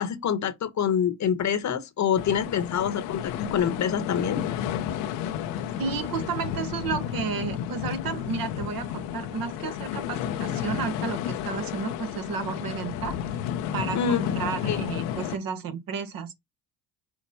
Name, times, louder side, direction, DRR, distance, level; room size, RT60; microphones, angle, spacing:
voice 1, 0.0-4.6 13.9-14.3 14.6-14.8, left 8 dB, 45° left, 1.0 m, -26 dB
sound 1, 2.2-15.4, left 9 dB, 85° left, 0.8 m, -32 dB
voice 2, 5.8-13.2 13.7-16.3, right 5 dB, 60° right, 1.1 m, -32 dB
5.7 x 2.1 x 4.1 m
supercardioid pair, 80°, 39 cm